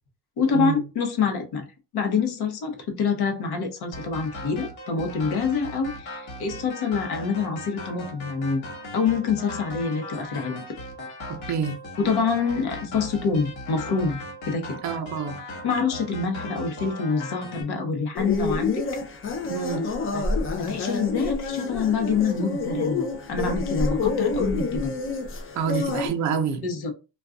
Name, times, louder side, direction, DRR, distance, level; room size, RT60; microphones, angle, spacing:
voice 1, 0.4-1.6 1.9-8.6 8.9-10.6 12.0-14.8 15.6-18.8 20.1-20.2 20.6-24.9 26.6-26.9, left 5 dB, 55° left, 0.9 m, -26 dB
sound 1, 3.9-17.6, left 1 dB, 80° left, 1.1 m, -38 dB
voice 2, 11.5-11.8 14.8-15.4 19.4-19.8 25.5-26.6, right 6 dB, 40° right, 0.5 m, -27 dB
sound 2, 18.2-26.1, left 3 dB, 30° left, 0.4 m, -28 dB
2.4 x 2.3 x 3.6 m
cardioid pair, 170°, 45 cm